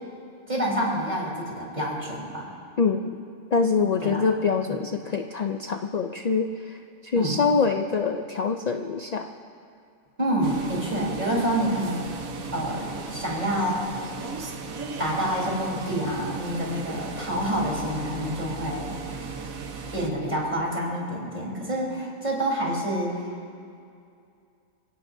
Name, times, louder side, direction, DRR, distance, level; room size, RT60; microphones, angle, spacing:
voice 1, 0.5-2.5 4.0-4.2 4.7-4.8 7.1-7.4 10.2-13.8 15.0-19.0 19.9-23.3, equal, 30° right, -4 dB, 4.1 m, -28 dB
voice 2, 2.8-3.1 3.5-9.3, left 5 dB, 50° left, 5 dB, 0.5 m, -25 dB
sound 1, 10.4-20.1, right 4 dB, 85° right, 1.5 m, -36 dB
29.0 x 17.0 x 2.7 m, 2.4 s
omnidirectional pair, 1.4 m